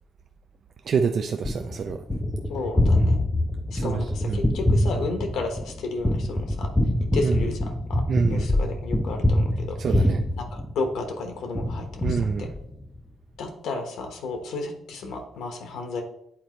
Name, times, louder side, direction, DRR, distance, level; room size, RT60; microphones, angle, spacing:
voice 1, 0.8-2.0 3.7-4.4 7.2-7.4 8.1-8.5 9.8-10.2 12.0-12.5, right 6 dB, 55° right, 5 dB, 0.4 m, -27 dB
Gunshot gunfire, 1.4-11.1 11.5-13.0, left 1 dB, 10° left, 0.6 m, -25 dB
voice 2, 2.5-3.2 3.7-6.7 7.0-8.0 8.3-9.8 10.4-12.5 13.4-16.0, left 3 dB, 80° left, 4 dB, 1.1 m, -32 dB
8.6 x 4.1 x 3.1 m, 0.77 s
cardioid pair, 90°, 0 cm